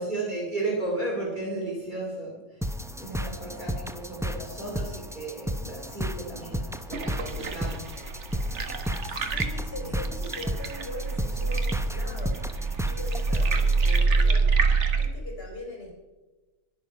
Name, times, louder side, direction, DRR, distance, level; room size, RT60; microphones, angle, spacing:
voice 1, 0.0-8.4 9.8-10.0, right 2 dB, 40° right, -4 dB, 2.9 m, -34 dB
sound 1, 2.6-14.0, equal, 5° right, 0.4 m, -34 dB
sound 2, 6.9-15.1, right 4 dB, 65° right, 1.5 m, -26 dB
voice 2, 9.1-12.4 12.9-14.5 15.0-16.0, left 1 dB, 50° left, -1 dB, 3.7 m, -40 dB
21.5 x 7.8 x 5.2 m, 1.2 s
omnidirectional pair, 1.3 m